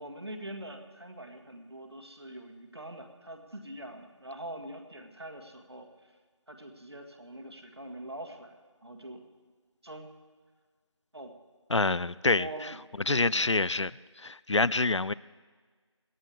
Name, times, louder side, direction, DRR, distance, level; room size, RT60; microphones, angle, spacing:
voice 1, 0.0-5.9 6.5-8.6 8.8-9.2 9.8-10.1 11.1-11.3 12.3-12.8 13.1-13.3, right 1 dB, 55° right, 2.0 m, -43 dB
voice 2, 11.7-12.7 13.1-13.9 14.2-15.1, left 3 dB, 70° left, 0.5 m, -26 dB
27.0 x 11.5 x 3.5 m
figure-of-eight pair, 175°, 16 cm